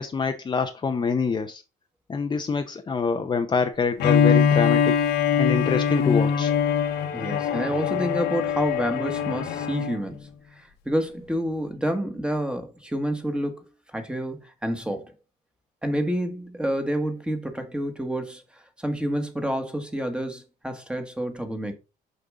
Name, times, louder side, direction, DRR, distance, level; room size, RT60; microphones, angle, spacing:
voice 1, 0.0-1.6 2.1-4.9 5.4-6.5, left 5 dB, 25° left, 0.7 m, -25 dB
Bowed string instrument, 4.0-10.0, left 7 dB, 80° left, 1.2 m, -22 dB
voice 2, 7.1-13.6 13.9-15.1 15.8-21.7, equal, 5° right, 1.4 m, -29 dB
6.6 x 5.3 x 3.7 m
cardioid pair, 110°, 17 cm